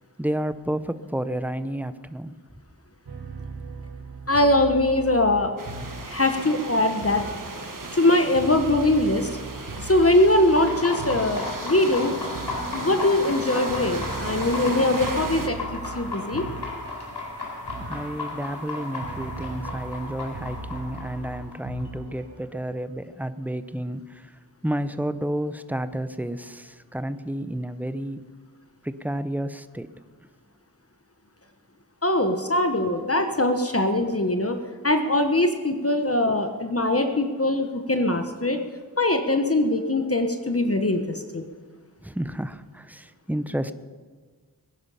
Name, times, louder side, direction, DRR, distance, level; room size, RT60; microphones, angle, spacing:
voice 1, 0.2-2.3 17.9-28.2 28.8-29.9 32.9-33.0 40.7-40.8 42.0-43.7, right 1 dB, 5° right, 12 dB, 0.7 m, -31 dB
sound 1, 3.1-22.4, right 3 dB, 80° right, 1.6 m, -39 dB
voice 2, 4.3-5.5 6.1-7.2 7.9-9.3 9.8-12.1 12.7-16.5 32.0-34.6 34.8-38.6 39.0-41.4, left 1 dB, 35° left, 6 dB, 1.2 m, -22 dB
sound 2, 5.6-15.5, right 3 dB, 55° right, 1.5 m, -36 dB
sound 3, 10.5-22.0, left 3 dB, 80° left, 4.3 m, -34 dB
21.0 x 11.0 x 5.7 m, 1.5 s
wide cardioid pair, 50°, 39 cm